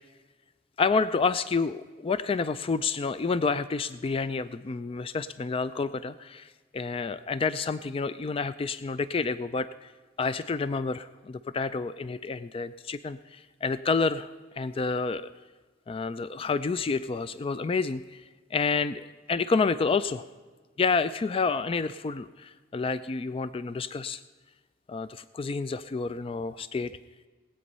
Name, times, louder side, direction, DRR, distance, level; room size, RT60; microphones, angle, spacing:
voice 1, 0.8-6.5 6.7-9.9 10.2-14.3 14.6-15.3 15.9-18.2 18.5-20.2 20.8-24.2 24.9-26.9, left 4 dB, 30° left, 14 dB, 0.3 m, -29 dB
19.0 x 8.7 x 5.4 m, 1.4 s
head